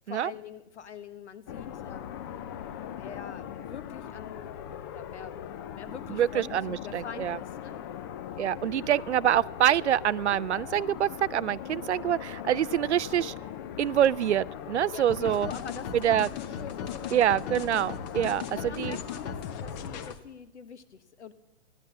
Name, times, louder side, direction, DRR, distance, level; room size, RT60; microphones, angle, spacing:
voice 1, 0.1-2.2 2.6-7.8 14.9-17.2 18.5-21.3, left 7 dB, 80° left, 12 dB, 1.3 m, -44 dB
sound 1, 1.5-20.1, left 10 dB, 20° left, 0.4 m, -40 dB
voice 2, 6.1-7.4 8.4-13.3 13.8-15.5 16.0-16.3 17.1-18.5 18.8-19.0, right 10 dB, 85° right, 21 dB, 0.5 m, -26 dB
sound 2, 15.1-20.2, left 6 dB, 40° left, 1.2 m, -38 dB
15.0 x 11.5 x 6.8 m, 0.98 s
hypercardioid pair, 135°, 34 cm